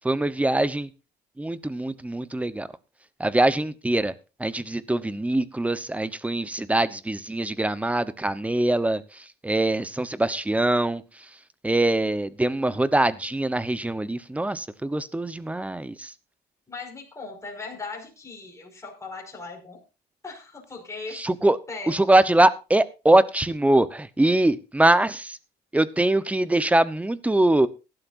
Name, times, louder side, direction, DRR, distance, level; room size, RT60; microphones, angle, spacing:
voice 1, 0.0-0.9 1.4-2.7 3.2-4.1 4.4-9.0 9.4-11.0 11.6-16.1 21.1-21.6 21.9-25.4 25.7-27.7, right 1 dB, 10° right, 15 dB, 0.9 m, -23 dB
voice 2, 16.7-19.8 20.2-21.2 21.7-22.0, left 4 dB, 15° left, 1 dB, 5.4 m, -38 dB
18.0 x 12.0 x 2.6 m, 0.30 s
cardioid pair, 110°, 17 cm